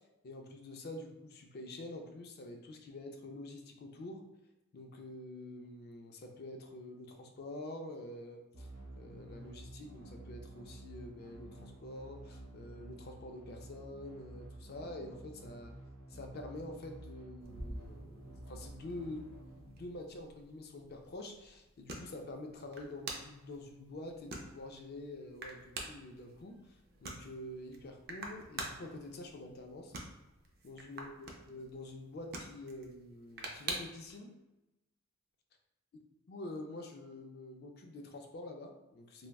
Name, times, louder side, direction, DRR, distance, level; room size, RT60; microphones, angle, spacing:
voice 1, 0.2-4.2 4.7-8.7 9.0-15.7 16.1-19.2 19.6-30.0 30.6-34.3 36.3-39.3, left 1 dB, 45° left, 3 dB, 0.4 m, -47 dB
sound 1, 8.5-20.5, right 1 dB, 80° right, 0.9 m, -51 dB
sound 2, 17.4-34.1, right 2 dB, 45° right, 0.4 m, -48 dB
3.4 x 2.1 x 2.3 m, 0.99 s
head